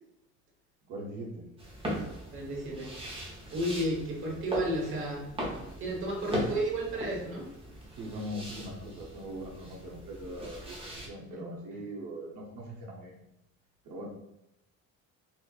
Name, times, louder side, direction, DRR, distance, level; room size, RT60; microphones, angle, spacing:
voice 1, 0.9-1.4 7.9-10.8 11.1-13.2 13.8-14.1, equal, 85° right, -2 dB, 0.8 m, -41 dB
sound 1, 1.6-11.1, equal, 20° right, 0.9 m, -39 dB
voice 2, 2.3-2.9 3.5-5.2 5.8-7.4 11.3-11.8, right 1 dB, 45° right, -2 dB, 1.2 m, -33 dB
4.2 x 2.3 x 2.3 m, 0.86 s
cardioid pair, 135°, 30 cm